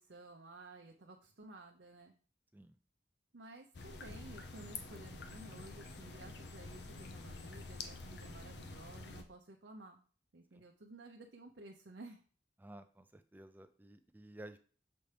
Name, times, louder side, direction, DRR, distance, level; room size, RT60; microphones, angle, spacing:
voice 1, 0.0-2.1 3.3-10.0 10.3-12.2, right 2 dB, 80° right, 1 dB, 0.7 m, -54 dB
sound 1, 3.7-9.2, left 3 dB, 75° left, 0.8 m, -48 dB
voice 2, 12.6-14.6, right 1 dB, 10° right, 9 dB, 0.4 m, -54 dB
6.9 x 4.3 x 3.3 m, 0.41 s
head